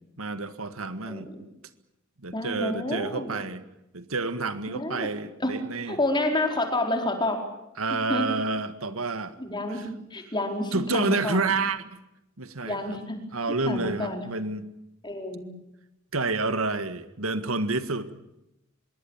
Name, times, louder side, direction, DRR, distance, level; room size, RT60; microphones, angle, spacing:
voice 1, 0.2-1.3 2.2-3.6 3.9-6.0 7.8-9.4 9.7-9.9 10.7-11.8 12.4-13.0 13.3-14.7 16.1-18.1, right 3 dB, 75° right, 11 dB, 1.8 m, -29 dB
voice 2, 1.0-1.3 2.3-3.3 4.7-5.1 5.4-5.5 5.9-7.4 8.1-8.2 9.4-11.4 12.6-13.2 13.7-14.3 15.0-15.5, left 1 dB, 20° left, 4 dB, 4.6 m, -29 dB
25.0 x 22.5 x 7.4 m, 0.87 s
head